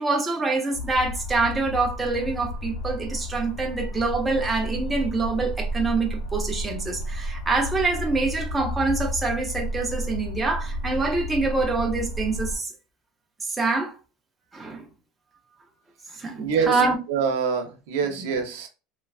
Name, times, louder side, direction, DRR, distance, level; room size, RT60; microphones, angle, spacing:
voice 1, 0.0-12.7 13.6-14.0 14.5-14.8 16.2-17.0, right 3 dB, 10° right, 0.5 m, -25 dB
sound 1, 0.7-12.6, equal, 85° left, 0.7 m, -32 dB
voice 2, 16.3-16.8 17.1-18.7, right 6 dB, 80° right, 0.7 m, -25 dB
3.1 x 2.3 x 2.3 m
cardioid pair, 165°, 0 cm